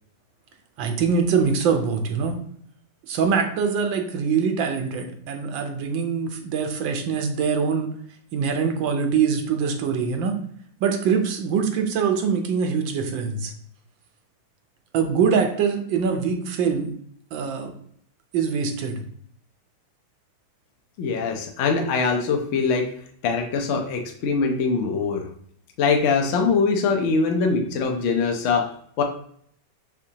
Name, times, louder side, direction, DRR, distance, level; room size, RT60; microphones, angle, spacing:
voice 1, 0.8-2.3 3.1-7.9 8.3-10.4 10.8-13.5 14.9-16.9 17.3-17.7 18.3-19.0, right 6 dB, 80° right, 4 dB, 1.5 m, -23 dB
voice 2, 21.0-22.9 23.2-25.3 25.8-28.7 29.0-29.1, left 4 dB, 70° left, 3 dB, 0.7 m, -22 dB
4.8 x 3.6 x 2.8 m, 0.64 s
omnidirectional pair, 2.0 m